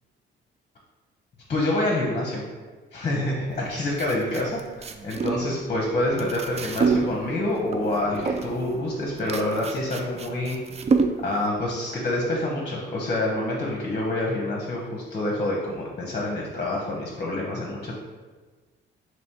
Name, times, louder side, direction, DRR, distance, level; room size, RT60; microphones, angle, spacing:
voice 1, 1.5-2.4 2.9-10.6 11.2-17.9, left 1 dB, 35° left, -2 dB, 0.8 m, -27 dB
sound 1, 3.5-11.5, right 4 dB, 35° right, 0.3 m, -29 dB
3.3 x 3.0 x 4.3 m, 1.3 s
cardioid pair, 90°, 20 cm